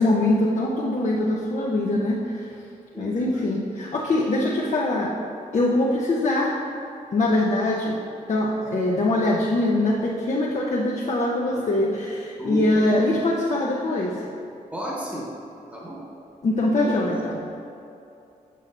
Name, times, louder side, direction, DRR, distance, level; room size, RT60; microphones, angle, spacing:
voice 1, 0.0-2.5 3.0-5.1 5.5-6.6 7.1-8.0 8.3-14.3 16.4-17.4, left 2 dB, 50° left, -4 dB, 0.6 m, -23 dB
voice 2, 2.9-3.5 12.4-13.0 14.7-15.3 15.7-16.0 16.7-17.0, right 1 dB, 10° right, -4 dB, 1.1 m, -33 dB
7.6 x 5.4 x 2.6 m, 2.6 s
cardioid pair, 85°, 15 cm